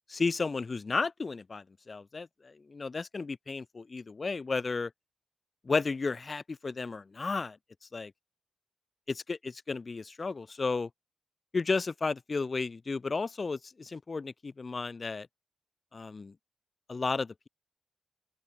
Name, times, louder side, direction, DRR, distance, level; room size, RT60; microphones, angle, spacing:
voice 1, 0.1-4.9 5.7-7.6 7.9-8.1 9.1-10.9 11.5-15.3 15.9-16.3 16.9-17.5, left 4 dB, 40° left, 1.8 m, -33 dB
open air
cardioid pair, 80°, 0 cm